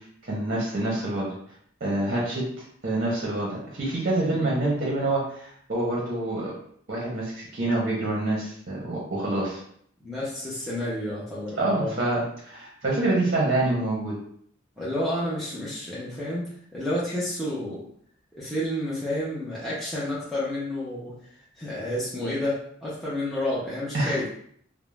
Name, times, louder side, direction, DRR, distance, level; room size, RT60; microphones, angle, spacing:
voice 1, 0.2-1.4 1.8-2.5 2.8-6.5 6.9-9.6 11.6-14.2 23.9-24.2, right 2 dB, 45° right, -4 dB, 0.7 m, -26 dB
voice 2, 10.0-12.0 14.8-16.5 16.7-17.9 18.4-21.1 21.6-24.3, left 1 dB, ahead, -10 dB, 0.5 m, -30 dB
2.4 x 2.0 x 3.1 m, 0.63 s
head